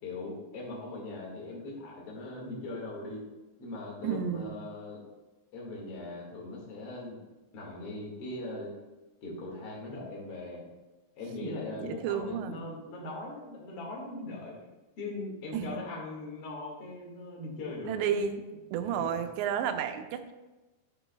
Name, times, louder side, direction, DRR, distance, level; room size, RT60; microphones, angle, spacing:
voice 1, 0.0-3.2 3.6-5.0 5.5-7.2 7.5-8.7 9.2-10.6 11.2-14.6 15.0-18.2 18.9-19.3, left 2 dB, 45° left, -3 dB, 2.1 m, -40 dB
voice 2, 4.0-4.6 11.8-12.6 15.5-15.8 17.9-18.4 18.7-20.3, right 8 dB, 85° right, 7 dB, 2.8 m, -31 dB
10.0 x 8.1 x 2.3 m, 1.1 s
omnidirectional pair, 5.1 m